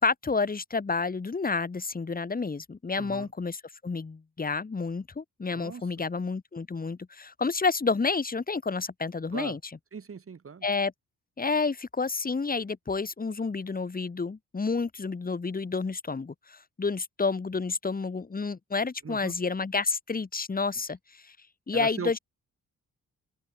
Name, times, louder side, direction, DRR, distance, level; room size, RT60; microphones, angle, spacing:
voice 1, 0.0-9.6 10.6-10.9 11.4-21.4 21.7-22.2, left 4 dB, 30° left, 2.6 m, -30 dB
voice 2, 3.0-3.3 5.5-5.9 9.3-9.6 9.9-10.7 19.0-19.3 21.7-22.2, right 6 dB, 45° right, 6.2 m, -39 dB
cardioid pair, 110°, 31 cm